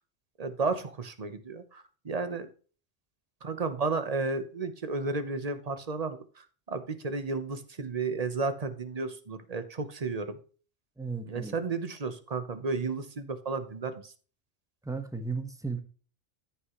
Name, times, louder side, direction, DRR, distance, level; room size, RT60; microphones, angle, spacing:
voice 1, 0.4-2.5 3.4-10.4 11.3-14.1, right 4 dB, 35° right, 11 dB, 1.0 m, -33 dB
voice 2, 11.0-11.6 14.8-15.8, right 4 dB, 5° right, 7 dB, 1.0 m, -35 dB
13.5 x 5.8 x 3.0 m, 0.39 s
omnidirectional pair, 1.2 m